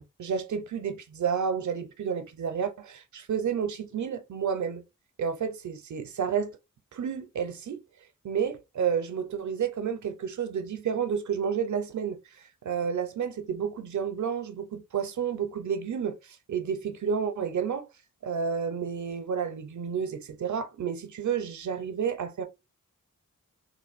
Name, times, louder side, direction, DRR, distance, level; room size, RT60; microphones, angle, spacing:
voice 1, 0.0-4.8 5.2-6.5 6.9-7.8 8.2-12.2 12.6-17.9 18.2-22.5, right 7 dB, 60° right, 0.6 m, -30 dB
3.2 x 2.5 x 2.4 m
wide cardioid pair, 130°, 33 cm